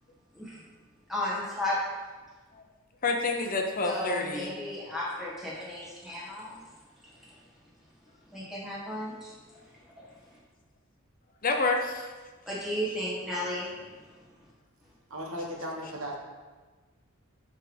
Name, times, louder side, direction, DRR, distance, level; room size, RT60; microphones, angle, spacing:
voice 1, 1.1-1.8 3.9-6.6 8.3-9.3 10.0-10.1 12.5-13.7, left 1 dB, ahead, -7 dB, 1.8 m, -34 dB
voice 2, 3.0-4.5 11.4-12.1, left 3 dB, 40° left, 3 dB, 0.7 m, -28 dB
voice 3, 15.1-16.2, equal, 75° right, -1 dB, 1.3 m, -36 dB
7.3 x 3.5 x 5.3 m, 1.3 s
head